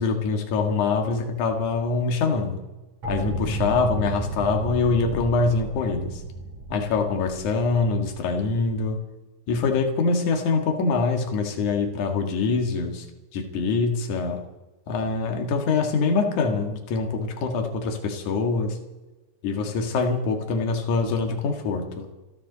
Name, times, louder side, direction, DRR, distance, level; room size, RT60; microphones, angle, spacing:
voice 1, 0.0-2.6 3.1-6.2 6.7-9.0 9.5-13.1 13.3-14.4 14.9-18.8 19.4-22.1, left 4 dB, 55° left, 4 dB, 2.8 m, -24 dB
sound 1, 3.0-8.7, right 2 dB, 35° right, 8.1 m, -33 dB
27.5 x 12.5 x 4.1 m, 1.1 s
omnidirectional pair, 5.1 m